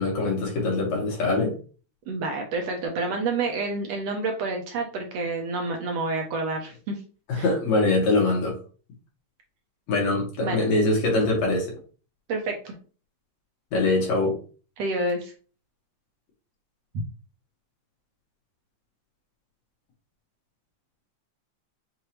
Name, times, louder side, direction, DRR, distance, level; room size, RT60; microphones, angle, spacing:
voice 1, 0.0-1.5 7.3-8.6 9.9-11.8 13.7-14.4, left 2 dB, 70° left, 2.7 m, -23 dB
voice 2, 2.1-7.0 7.3-7.5 10.4-10.7 12.3-12.7 14.8-15.3, right 3 dB, 70° right, 1.7 m, -28 dB
6.4 x 2.7 x 3.0 m
omnidirectional pair, 3.4 m